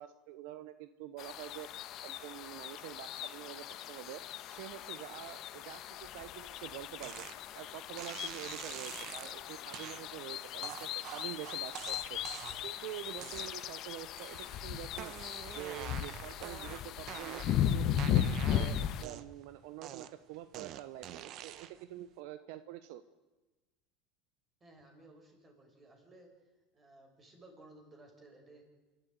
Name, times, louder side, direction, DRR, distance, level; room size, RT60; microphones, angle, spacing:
voice 1, 0.0-1.7 2.0-4.2 4.5-7.3 7.5-12.2 12.6-15.1 15.5-18.3 18.5-23.0, right 13 dB, 70° right, 12 dB, 1.0 m, -46 dB
sound 1, 1.2-19.0, left 10 dB, 50° left, 1.4 m, -37 dB
sound 2, 7.0-7.4 8.0-9.3 9.7-10.0 10.6-12.7 13.2-13.8 14.2-14.6 14.9-17.6 18.0-19.4 19.8-21.8, right 12 dB, 50° right, 1.1 m, -46 dB
voice 2, 24.6-26.3 26.7-28.6, right 2 dB, 25° right, 3 dB, 7.0 m, -57 dB
27.0 x 13.5 x 9.2 m, 1.2 s
supercardioid pair, 110°, 0 cm